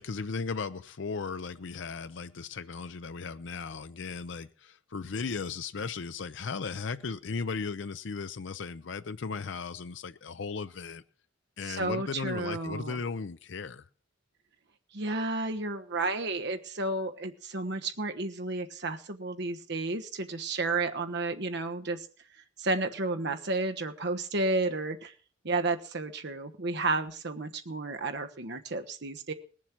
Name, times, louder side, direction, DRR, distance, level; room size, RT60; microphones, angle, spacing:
voice 1, 0.0-11.0 11.6-13.8, left 5 dB, 65° left, 0.6 m, -36 dB
voice 2, 11.7-13.0 14.9-22.1 22.6-25.1 25.4-29.3, right 2 dB, 60° right, 1.2 m, -32 dB
20.0 x 7.3 x 6.0 m
head